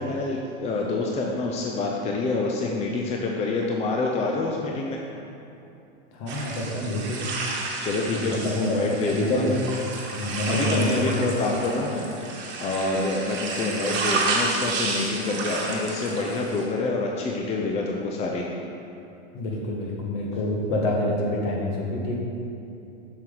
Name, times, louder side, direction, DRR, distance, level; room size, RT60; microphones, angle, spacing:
voice 1, 0.0-5.0 7.8-9.4 10.5-12.1 12.6-18.5, left 3 dB, 20° left, -1 dB, 0.5 m, -27 dB
voice 2, 6.1-7.2 8.1-8.9 9.1-9.6 10.1-11.2 19.3-22.2, left 1 dB, 50° left, -2 dB, 1.8 m, -27 dB
sound 1, 6.3-16.6, right 3 dB, 35° right, 1.4 m, -31 dB
7.3 x 6.2 x 3.9 m, 2.7 s
hypercardioid pair, 125°, 34 cm